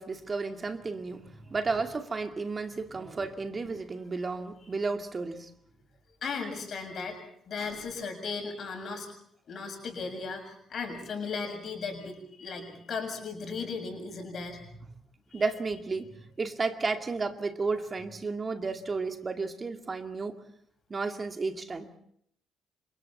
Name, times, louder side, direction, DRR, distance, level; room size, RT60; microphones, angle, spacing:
voice 1, 0.0-5.5 15.3-16.1 16.4-20.4 20.9-21.9, right 4 dB, 35° right, 7 dB, 2.2 m, -32 dB
voice 2, 6.2-7.2 7.5-9.1 9.5-14.9 15.3-15.5, left 4 dB, 50° left, 4 dB, 7.2 m, -36 dB
29.0 x 26.5 x 4.3 m, 0.68 s
figure-of-eight pair, 45°, 0 cm